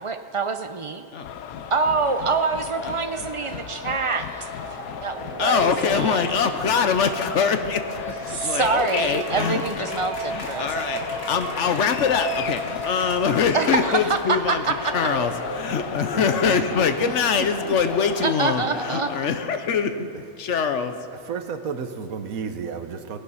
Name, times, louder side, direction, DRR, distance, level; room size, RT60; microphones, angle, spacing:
voice 1, 0.0-1.0 1.7-4.3 5.0-6.2 8.3-10.9 13.5-14.9 18.2-19.1, right 4 dB, 50° right, 8 dB, 0.3 m, -25 dB
sound 1, 1.2-19.2, left 8 dB, 85° left, 1.1 m, -36 dB
sound 2, 2.2-19.0, right 2 dB, 15° right, 4.9 m, -36 dB
voice 2, 5.4-9.9 10.3-20.1 20.4-21.1, left 6 dB, 60° left, 9 dB, 1.0 m, -24 dB
sound 3, 7.0-14.5, left 2 dB, 45° left, 2.0 m, -40 dB
voice 3, 16.1-17.1 17.4-17.8 21.3-23.2, right 6 dB, 80° right, 8 dB, 1.3 m, -33 dB
18.0 x 10.5 x 5.6 m, 2.3 s
omnidirectional pair, 1.5 m